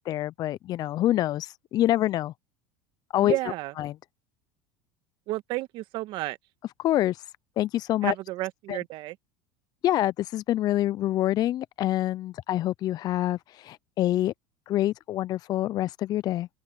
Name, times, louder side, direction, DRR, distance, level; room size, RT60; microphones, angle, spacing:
voice 1, 0.0-2.3 3.1-3.4 3.8-4.0 6.8-7.2 7.6-8.1 8.7-8.8 9.8-14.3 14.7-16.5, left 14 dB, 45° left, 0.4 m, -26 dB
voice 2, 3.2-3.7 5.3-6.4 8.0-9.1, right 18 dB, 60° right, 1.6 m, -31 dB
open air
supercardioid pair, 95°, 10 cm